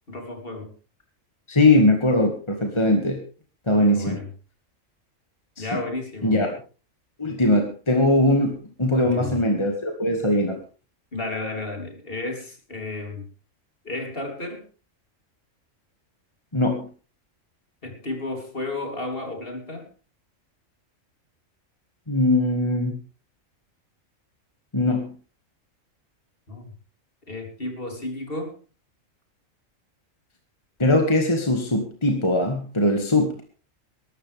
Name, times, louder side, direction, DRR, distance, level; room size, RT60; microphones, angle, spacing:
voice 1, 0.1-0.7 3.8-4.3 5.6-6.4 8.9-9.4 11.1-13.3 13.8-14.7 17.8-19.9 26.5-26.7 27.3-28.6, left 2 dB, 45° left, 3 dB, 3.6 m, -32 dB
voice 2, 1.5-3.2 3.7-4.2 5.6-5.8 6.2-6.5 7.2-8.5 8.8-10.6 16.5-16.9 22.1-22.9 24.7-25.1 30.8-33.4, left 1 dB, 20° left, 3 dB, 2.1 m, -21 dB
21.0 x 13.0 x 3.5 m, 0.35 s
omnidirectional pair, 1.4 m